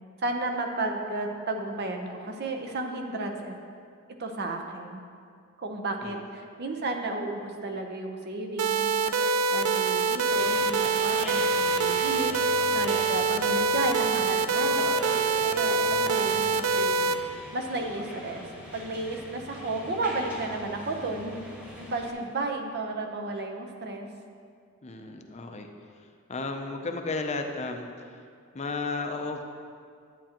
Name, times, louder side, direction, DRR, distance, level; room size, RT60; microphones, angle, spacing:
voice 1, 0.2-3.6 4.2-5.0 5.6-9.1 9.5-12.4 12.7-15.0 15.4-17.2 17.5-18.4 18.7-21.4 21.8-24.1, right 2 dB, 50° right, 3 dB, 0.8 m, -33 dB
sound 1, 8.6-17.1, right 4 dB, 85° right, 0.4 m, -25 dB
sound 2, 10.3-22.1, equal, 5° right, 1.4 m, -42 dB
voice 2, 24.8-25.7 26.0-28.2 28.5-29.4, left 3 dB, 30° left, 4 dB, 0.6 m, -34 dB
11.0 x 8.7 x 2.9 m, 2.2 s
head